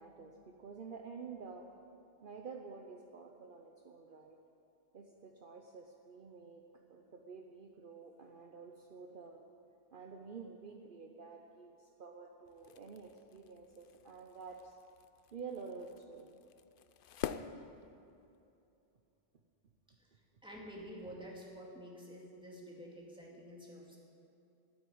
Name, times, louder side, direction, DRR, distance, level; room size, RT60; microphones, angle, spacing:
voice 1, 0.0-1.7 2.2-4.4 4.9-9.4 9.9-14.7 15.3-16.4 20.1-20.2, right 5 dB, 55° right, 2 dB, 1.0 m, -50 dB
sound 1, 12.4-18.4, left 8 dB, 60° left, 0.7 m, -48 dB
voice 2, 20.0-24.0, equal, 5° right, -3 dB, 2.4 m, -50 dB
13.0 x 9.3 x 8.7 m, 2.7 s
omnidirectional pair, 1.1 m